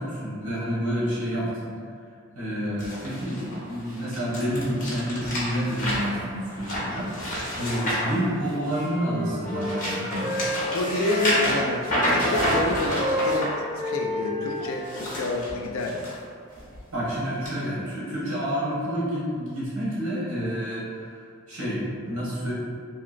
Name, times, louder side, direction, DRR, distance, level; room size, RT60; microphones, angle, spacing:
voice 1, 0.0-1.7 2.3-7.1 7.5-10.3 16.9-21.1 21.5-22.5, equal, 80° right, -9 dB, 1.3 m, -29 dB
sound 1, 2.8-8.9 9.4-13.5 14.7-16.1 16.6-16.8 17.5-17.6, equal, 40° left, 0.8 m, -29 dB
Wind instrument woodwind instrument, 8.6-11.6 11.8-15.0, equal, 30° right, 0.4 m, -31 dB
voice 2, 10.7-11.8 12.1-13.5 13.8-16.2, left 2 dB, 70° left, 1 dB, 0.4 m, -29 dB
2.9 x 2.8 x 2.5 m, 2.2 s
head